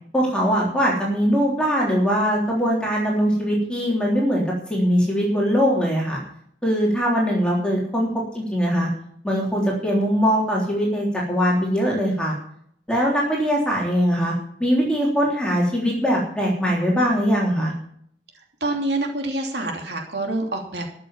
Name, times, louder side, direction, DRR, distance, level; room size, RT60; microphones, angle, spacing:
voice 1, 0.1-6.2 6.6-8.1 8.3-8.9 9.2-12.3 12.9-14.3 14.6-17.7, equal, 5° left, -4 dB, 3.4 m, -21 dB
voice 2, 18.3-20.9, right 2 dB, 65° right, 2 dB, 2.9 m, -27 dB
13.5 x 6.8 x 8.6 m, 0.65 s
head